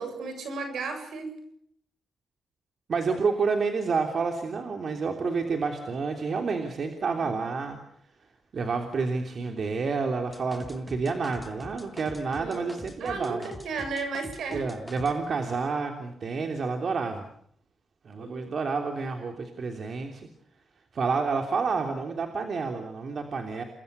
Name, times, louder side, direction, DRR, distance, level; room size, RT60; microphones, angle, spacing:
voice 1, 0.0-1.4 7.2-7.4 12.3-12.7 13.0-14.7 18.2-18.6, right 4 dB, 80° right, 7 dB, 8.0 m, -35 dB
voice 2, 2.9-7.8 8.5-13.5 14.5-17.3 18.0-20.3 20.9-23.6, right 4 dB, 55° right, 4 dB, 3.2 m, -29 dB
sound 1, 10.3-15.2, left 2 dB, 10° left, 3.5 m, -44 dB
29.5 x 22.0 x 6.9 m, 0.66 s
cardioid pair, 85°, 0 cm